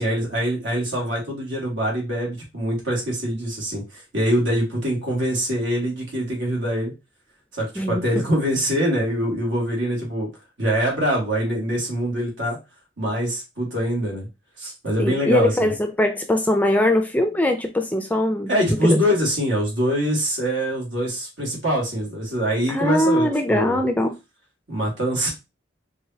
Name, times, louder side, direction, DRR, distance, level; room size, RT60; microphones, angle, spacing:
voice 1, 0.0-6.9 7.5-10.3 10.6-12.6 13.0-14.3 14.6-15.7 18.5-23.8 24.7-25.3, equal, 70° right, 2.1 m, -24 dB
voice 2, 15.0-18.5 18.8-19.0 22.7-24.1, left 1 dB, 10° left, 0.5 m, -21 dB
4.8 x 2.8 x 2.8 m
head